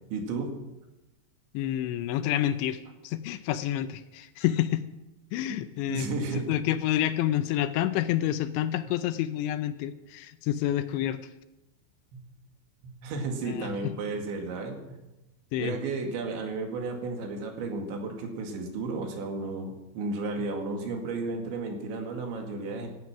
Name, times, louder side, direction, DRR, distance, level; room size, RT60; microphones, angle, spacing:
voice 1, 0.1-0.6 5.5-5.6 5.9-6.6 12.1-12.3 12.8-15.0 15.6-22.9, right 3 dB, 75° right, 3 dB, 4.4 m, -33 dB
voice 2, 1.5-2.8 3.0-4.9 5.3-6.1 6.3-11.2 13.4-13.9 15.5-15.7, left 12 dB, 80° left, 11 dB, 2.9 m, -28 dB
17.0 x 12.0 x 6.1 m, 0.98 s
omnidirectional pair, 5.4 m